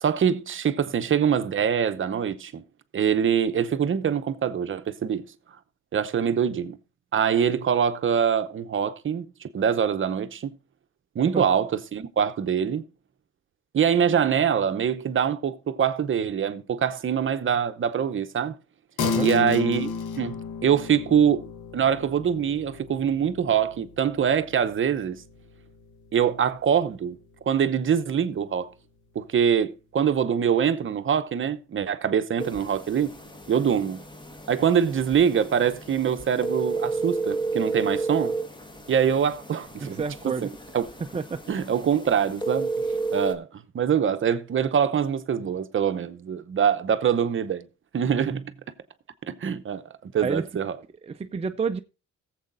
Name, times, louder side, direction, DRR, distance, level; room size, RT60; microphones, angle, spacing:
voice 1, 0.0-2.6 2.9-5.3 5.9-6.8 7.1-10.5 11.1-12.8 13.7-18.5 19.2-19.9 20.2-25.2 26.1-27.2 27.5-28.7 29.1-33.1 33.5-34.0 34.5-38.3 38.9-40.8 41.5-42.7 43.1-47.7 47.9-48.4 49.2-50.7, right 8 dB, 40° right, 0.8 m, -24 dB
sound 1, 19.0-28.7, left 5 dB, 90° left, 1.1 m, -34 dB
sound 2, 32.4-43.3, right 3 dB, 15° left, 1.1 m, -32 dB
voice 2, 39.8-40.5 41.1-41.4 50.2-50.4 51.0-51.8, right 5 dB, 20° right, 0.4 m, -29 dB
17.5 x 7.6 x 2.6 m
cardioid pair, 90°, 30 cm